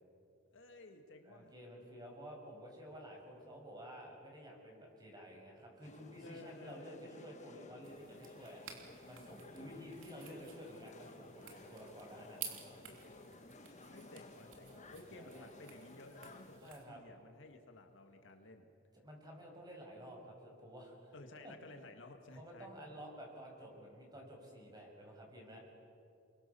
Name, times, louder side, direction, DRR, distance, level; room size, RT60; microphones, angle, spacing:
voice 1, 0.5-1.5 6.2-7.0 13.9-18.7 21.1-22.7, left 2 dB, 65° left, 5 dB, 2.0 m, -55 dB
voice 2, 1.2-13.1 14.6-15.5 16.6-17.0 19.0-21.5 22.4-25.6, equal, 20° right, 0 dB, 6.4 m, -52 dB
sound 1, 5.8-16.6, left 2 dB, 35° left, 1.5 m, -57 dB
sound 2, 7.8-16.8, right 8 dB, 75° right, 3.4 m, -53 dB
29.5 x 23.5 x 7.0 m, 2.8 s
head